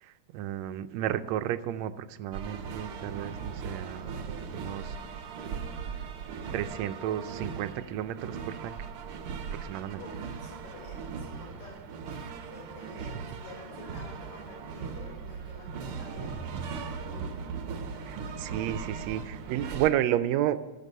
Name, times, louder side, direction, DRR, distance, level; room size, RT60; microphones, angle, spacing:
voice 1, 0.0-4.9 6.5-8.8 9.6-10.0 13.0-13.1 18.1-20.6, right 12 dB, 80° right, 11 dB, 1.7 m, -32 dB
sound 1, 2.3-19.9, right 5 dB, 65° right, 1.5 m, -38 dB
voice 2, 10.0-11.8 12.5-16.3 17.0-17.3, left 3 dB, 80° left, 0 dB, 5.6 m, -49 dB
16.0 x 6.7 x 5.4 m, 1.3 s
omnidirectional pair, 3.3 m